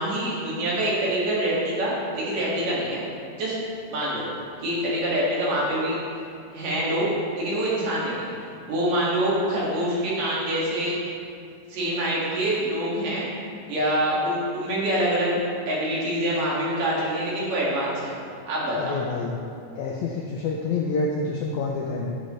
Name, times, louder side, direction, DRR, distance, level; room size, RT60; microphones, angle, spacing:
voice 1, 0.0-3.0 3.4-3.5 3.9-4.2 4.6-6.0 6.5-8.3 8.7-11.0 11.7-13.3 13.7-18.1 18.5-18.9, right 1 dB, 65° right, -7 dB, 3.7 m, -25 dB
voice 2, 18.7-19.4 19.7-22.1, left 3 dB, 85° left, 0 dB, 1.7 m, -28 dB
10.5 x 9.5 x 3.2 m, 2.4 s
omnidirectional pair, 4.1 m